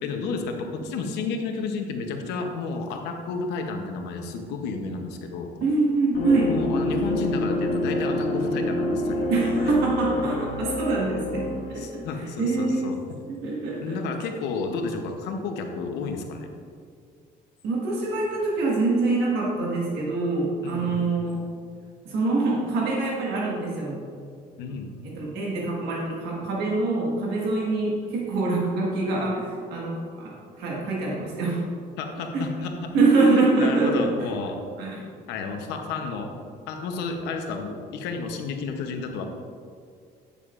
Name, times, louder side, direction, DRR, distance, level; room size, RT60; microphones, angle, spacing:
voice 1, 0.0-5.5 6.5-9.7 11.8-13.0 13.8-16.5 20.6-21.0 24.6-25.0 32.0-32.7 33.2-34.6 35.3-36.3 36.7-39.3, left 4 dB, 90° left, 3 dB, 0.8 m, -31 dB
voice 2, 5.6-6.5 9.3-12.0 12.4-12.9 13.3-14.0 17.6-21.4 22.0-24.0 25.0-30.3 30.6-31.6 32.3-32.4 32.9-34.1 34.8-35.0, right 3 dB, 80° right, -4 dB, 1.6 m, -24 dB
sound 1, 6.1-11.9, left 1 dB, 60° left, 1.3 m, -27 dB
8.3 x 6.7 x 2.5 m, 2.2 s
cardioid pair, 110°, 17 cm